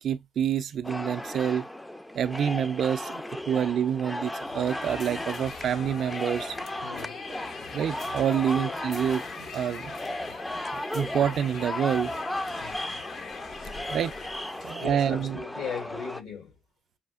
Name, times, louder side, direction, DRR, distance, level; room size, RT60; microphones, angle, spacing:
voice 1, 0.0-1.7 2.1-6.6 7.7-9.9 10.9-12.1 13.9-14.1 14.6-15.4, right 9 dB, 65° right, 0.4 m, -27 dB
sound 1, 0.8-16.2, left 1 dB, 10° left, 0.4 m, -36 dB
sound 2, 4.3-14.7, left 5 dB, 60° left, 0.7 m, -41 dB
voice 2, 6.8-7.7 8.6-8.8 10.2-10.5 12.6-12.8 14.6-16.6, left 6 dB, 85° left, 2.3 m, -39 dB
5.6 x 2.4 x 2.3 m
cardioid pair, 90°, 0 cm